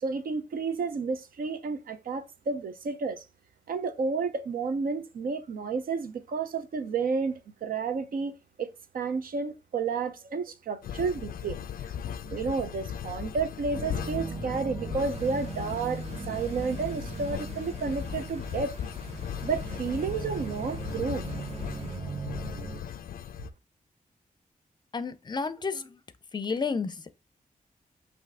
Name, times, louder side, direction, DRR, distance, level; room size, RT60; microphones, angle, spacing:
voice 1, 0.0-3.2 3.7-7.3 7.6-8.3 8.6-8.7 8.9-11.6 12.2-18.7 19.4-21.2, right 4 dB, 75° right, 0.7 m, -31 dB
sound 1, 10.8-23.5, left 9 dB, 80° left, 0.4 m, -38 dB
sound 2, 13.7-22.8, right 4 dB, 25° right, 0.4 m, -39 dB
sound 3, 15.0-22.0, right 2 dB, 45° right, 1.2 m, -52 dB
voice 2, 24.9-26.0 26.3-27.1, left 4 dB, 30° left, 0.5 m, -31 dB
5.7 x 2.7 x 3.4 m
wide cardioid pair, 100°, 15 cm